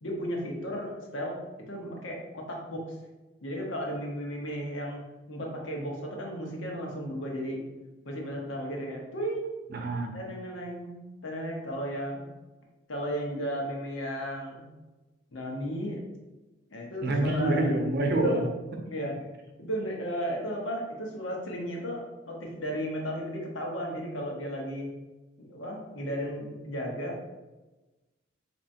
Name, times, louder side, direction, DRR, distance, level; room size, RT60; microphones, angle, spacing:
voice 1, 0.0-1.3 1.7-3.0 3.4-5.0 5.3-7.6 8.0-9.6 10.1-12.2 12.9-14.7 15.3-16.0 16.7-17.6 18.2-18.4 18.8-19.2 19.6-24.9 25.4-27.2, equal, 85° left, -1 dB, 0.9 m, -34 dB
voice 2, 9.7-10.1 17.0-18.4, right 2 dB, 55° right, 2 dB, 0.6 m, -26 dB
4.3 x 3.0 x 2.6 m, 1.1 s
head